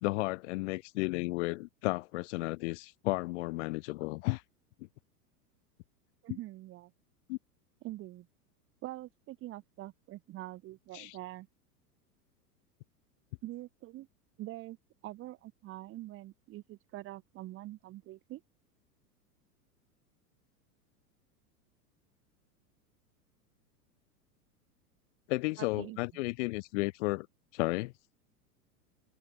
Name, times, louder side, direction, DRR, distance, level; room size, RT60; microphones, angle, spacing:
voice 1, 0.0-4.4 7.3-7.4 10.9-11.2 25.3-27.3 27.5-27.9, left 22 dB, 50° left, 0.5 m, -33 dB
voice 2, 6.2-6.9 7.8-8.3 8.8-11.5 13.4-14.1 14.4-14.8 15.0-18.4 25.6-26.2, right 16 dB, 25° right, 0.7 m, -44 dB
open air
hypercardioid pair, 100°, 48 cm